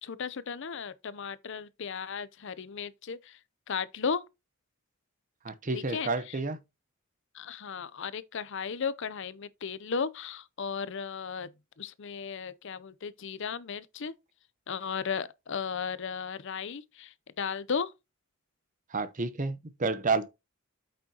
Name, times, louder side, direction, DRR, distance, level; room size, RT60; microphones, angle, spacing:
voice 1, 0.0-3.4 3.7-4.2 5.7-6.4 7.3-11.5 11.8-14.1 14.7-17.9, left 6 dB, 60° left, 0.6 m, -35 dB
voice 2, 5.4-6.6 18.9-20.3, right 3 dB, 40° right, 0.8 m, -30 dB
8.5 x 6.1 x 2.9 m
head